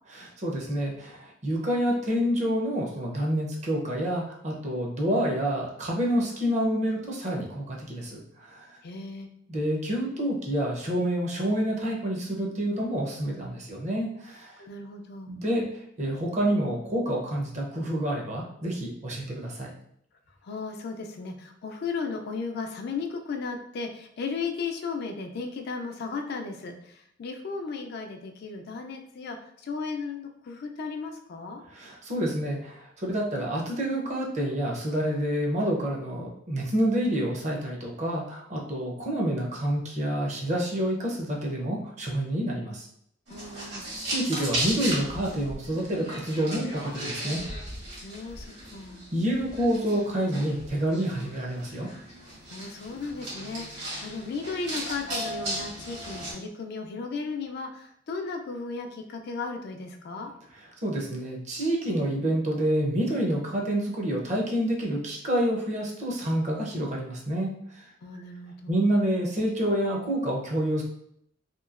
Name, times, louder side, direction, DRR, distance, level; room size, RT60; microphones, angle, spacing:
voice 1, 0.1-8.7 9.5-14.5 15.3-15.7 16.0-19.7 31.7-42.9 44.0-47.4 49.1-51.9 60.8-67.8 68.7-70.8, right 1 dB, 40° right, -1 dB, 0.6 m, -28 dB
voice 2, 8.8-9.3 14.6-15.3 20.4-31.6 43.3-43.9 48.0-49.0 52.5-60.3 68.0-68.9, left 4 dB, 60° left, 4 dB, 0.4 m, -35 dB
sound 1, 43.3-56.3, right 1 dB, 65° right, 1.3 m, -36 dB
2.9 x 2.7 x 2.4 m, 0.73 s
head